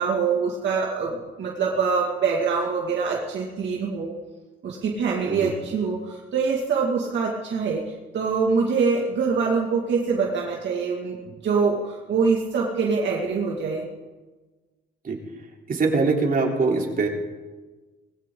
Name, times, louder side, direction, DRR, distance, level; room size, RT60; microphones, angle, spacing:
voice 1, 0.0-4.1 4.6-11.2 11.4-13.9, right 5 dB, 65° right, -2 dB, 2.3 m, -24 dB
voice 2, 15.7-17.1, right 3 dB, 45° right, 0 dB, 3.4 m, -22 dB
20.5 x 16.0 x 3.9 m, 1.3 s
cardioid pair, 90°, 20 cm